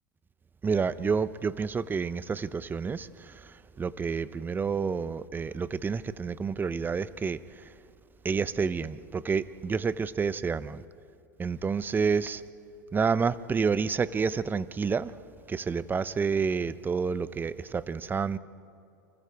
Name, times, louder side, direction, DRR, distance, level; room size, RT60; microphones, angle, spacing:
voice 1, 0.6-3.1 3.8-7.4 8.2-10.8 11.4-12.4 12.9-15.1 15.5-18.4, right 5 dB, 20° right, 16 dB, 0.7 m, -29 dB
30.0 x 25.0 x 3.5 m, 2.6 s
hypercardioid pair, 100°, 11 cm